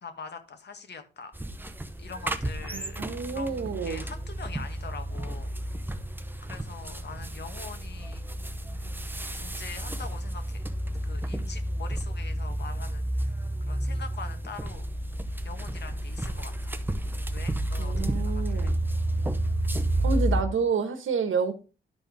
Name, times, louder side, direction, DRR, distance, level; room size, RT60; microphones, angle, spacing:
voice 1, 0.0-1.3 2.0-3.0 3.3-5.5 6.4-8.3 9.3-10.6 11.0-14.8 15.4-16.8 17.3-18.8, left 5 dB, 60° left, 1.5 m, -43 dB
sound 1, 1.3-20.4, right 1 dB, 10° right, 0.7 m, -31 dB
voice 2, 2.7-4.0 17.8-18.8 20.0-21.5, right 5 dB, 90° right, 1.4 m, -29 dB
11.5 x 4.4 x 4.8 m
wide cardioid pair, 125°, 20 cm